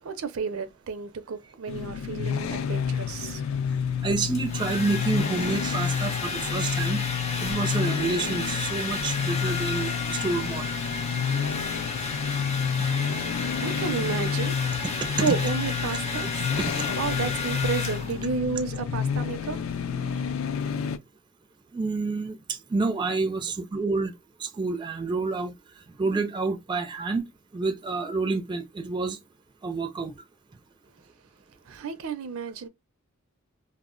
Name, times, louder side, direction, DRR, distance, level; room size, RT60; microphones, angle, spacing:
voice 1, 0.0-3.6 13.6-14.8 15.2-16.5 17.0-19.6 20.0-20.1 31.7-32.7, right 5 dB, 85° right, 0.5 m, -31 dB
sound 1, 1.7-21.0, left 7 dB, 75° left, 0.3 m, -30 dB
voice 2, 4.0-7.0 7.4-10.6 14.8-14.9 15.3-15.4 16.6-17.0 21.7-24.1 24.4-25.5 26.0-27.3 27.5-29.2 29.6-30.1, right 3 dB, 20° right, 0.4 m, -28 dB
Domestic sounds home sounds, 4.1-18.4, left 4 dB, 30° left, 0.6 m, -33 dB
2.0 x 2.0 x 3.6 m
head